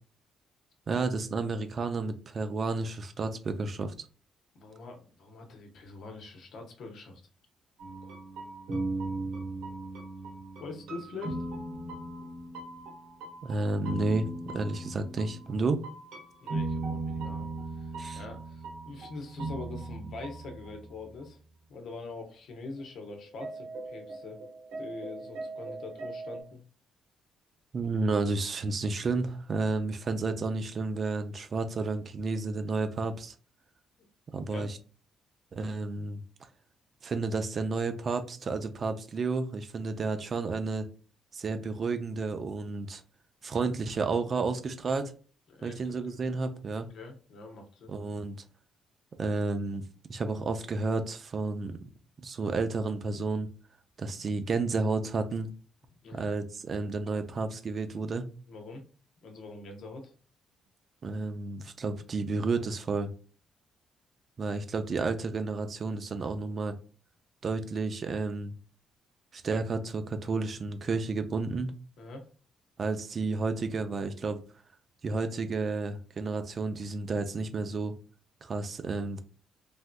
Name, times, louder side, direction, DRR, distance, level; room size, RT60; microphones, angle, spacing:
voice 1, 0.9-3.9 13.4-15.8 18.0-18.2 27.7-33.3 34.3-34.8 35.5-36.2 37.0-40.9 41.3-43.0 43.4-45.1 45.6-46.9 47.9-48.4 49.2-49.8 50.1-51.9 52.2-53.5 54.0-55.5 56.1-58.3 61.0-63.1 64.4-66.8 67.4-68.5 69.3-71.7 72.8-74.4 75.0-78.0 78.4-79.2, right 3 dB, 45° right, 8 dB, 0.4 m, -31 dB
voice 2, 4.5-7.2 8.0-8.2 10.6-11.4 16.4-21.4 21.7-24.4 24.8-26.6 34.5-34.7 45.5-46.2 46.9-48.0 56.0-56.3 58.5-58.8 59.2-60.1 72.0-72.3, left 3 dB, 70° left, 4 dB, 0.8 m, -44 dB
sound 1, 7.8-20.9 21.2-21.3 22.8-22.9 23.1-26.4, right 2 dB, 85° right, 1.3 m, -38 dB
3.4 x 2.6 x 2.2 m, 0.37 s
cardioid pair, 90°, 0 cm